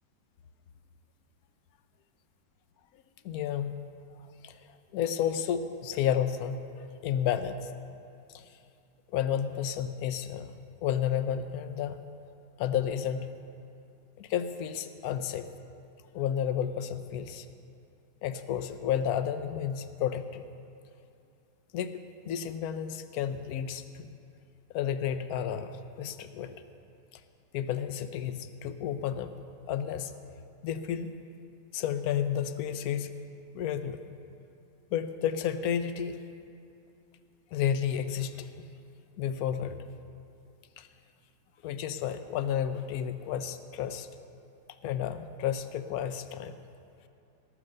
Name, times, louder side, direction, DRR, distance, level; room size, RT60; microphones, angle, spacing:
voice 1, 3.2-3.7 4.4-4.7 4.9-7.7 8.3-8.5 9.1-12.0 12.6-13.3 14.2-15.5 16.1-17.5 18.2-20.4 21.7-24.1 24.7-26.6 27.1-27.2 27.5-30.1 30.6-31.1 31.7-33.1 33.5-34.0 34.9-36.2 37.5-38.7 39.2-39.8 40.8-40.9 41.6-44.1 44.8-46.5, left 9 dB, 65° left, 10 dB, 1.0 m, -31 dB
18.0 x 7.5 x 6.6 m, 2.6 s
omnidirectional pair, 1.9 m